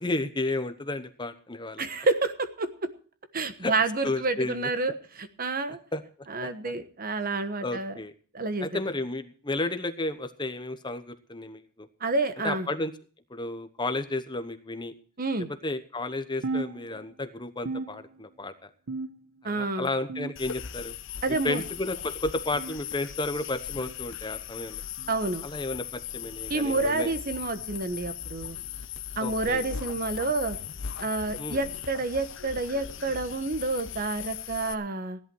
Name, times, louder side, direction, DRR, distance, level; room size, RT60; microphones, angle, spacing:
voice 1, 0.0-1.8 3.6-3.7 4.0-4.7 5.9-6.0 6.4-6.7 7.6-8.1 8.6-11.9 12.4-12.9 13.3-14.9 15.6-18.7 19.4-20.9 21.4-24.8 25.4-27.1 29.2-29.7 31.4-31.6, left 2 dB, 20° left, 10 dB, 1.0 m, -32 dB
voice 2, 1.8-2.9 3.3-5.8 6.3-8.0 8.3-8.7 12.0-12.7 15.2-15.5 19.4-19.9 21.2-21.6 25.1-25.4 26.5-28.6 29.2-30.6 31.0-35.2, right 3 dB, 45° right, 11 dB, 1.2 m, -29 dB
sound 1, 16.4-17.3 17.7-18.5 18.9-19.5 20.1-20.7 21.3-21.7 22.5-22.8 23.8-24.0 25.0-25.2 26.2-26.4 27.4-27.6 28.6-28.8 29.9-30.0 31.1-31.2, right 3 dB, 75° right, 1.0 m, -37 dB
sound 2, 20.4-34.7, left 9 dB, 60° left, 0.8 m, -38 dB
16.5 x 11.0 x 4.6 m, 0.42 s
head